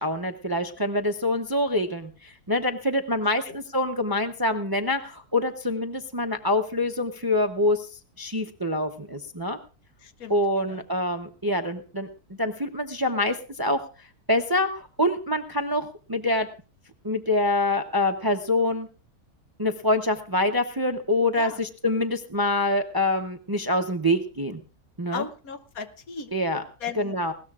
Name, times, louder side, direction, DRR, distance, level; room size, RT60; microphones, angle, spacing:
voice 1, 0.0-9.6 10.3-12.1 12.4-16.5 17.0-18.9 19.6-24.6 25.0-25.2 26.3-26.6 27.0-27.3, left 1 dB, 20° right, 6 dB, 0.6 m, -25 dB
voice 2, 10.0-10.8 21.3-21.6 25.1-26.3 26.8-27.2, left 6 dB, 70° left, 9 dB, 1.4 m, -36 dB
20.0 x 17.5 x 2.4 m, 0.35 s
omnidirectional pair, 1.6 m